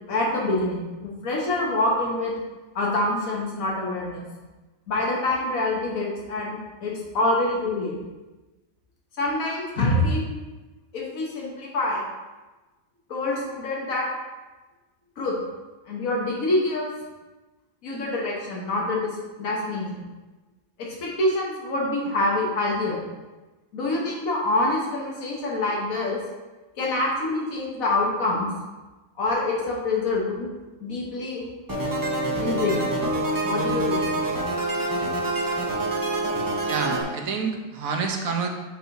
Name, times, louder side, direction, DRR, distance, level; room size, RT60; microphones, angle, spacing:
voice 1, 0.1-2.4 2.7-4.2 4.9-7.9 9.2-10.3 10.9-12.1 13.1-14.1 15.2-15.3 15.9-16.9 17.8-19.1 19.4-20.1 20.8-23.0 23.7-26.2 26.8-28.5 29.2-30.5 30.8-31.5 32.4-32.8 33.4-34.1, left 2 dB, 85° left, -3 dB, 1.5 m, -26 dB
sound 1, 31.7-37.0, right 2 dB, 20° right, 0.7 m, -26 dB
voice 2, 36.7-38.5, right 5 dB, 90° right, 3 dB, 1.2 m, -28 dB
8.7 x 4.6 x 2.6 m, 1.2 s
omnidirectional pair, 1.4 m